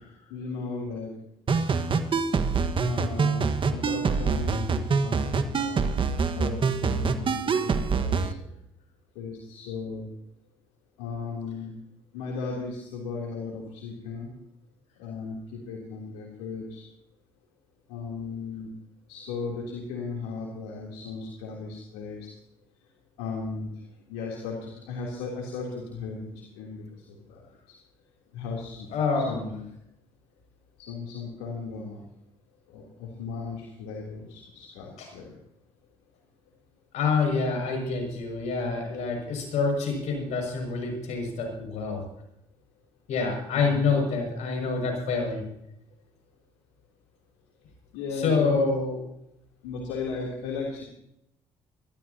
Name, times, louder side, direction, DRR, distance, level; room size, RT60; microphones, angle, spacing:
voice 1, 0.3-1.1 2.9-5.9 6.3-8.4 9.1-10.1 11.0-11.8 12.1-14.3 15.0-16.8 17.9-18.7 19.1-22.3 23.2-23.7 24.1-27.8 28.3-28.9 29.1-29.7 30.8-32.0 32.7-35.4 43.5-44.0 47.9-48.6 49.6-50.8, left 4 dB, 90° left, -2 dB, 3.3 m, -36 dB
sound 1, 1.5-8.3, right 5 dB, 45° right, 1.5 m, -25 dB
voice 2, 28.9-29.4 35.0-35.1 36.9-42.0 43.1-45.4 48.2-48.9, left 4 dB, 75° left, 3 dB, 6.5 m, -27 dB
24.0 x 13.5 x 2.9 m, 0.80 s
supercardioid pair, 65°, 12 cm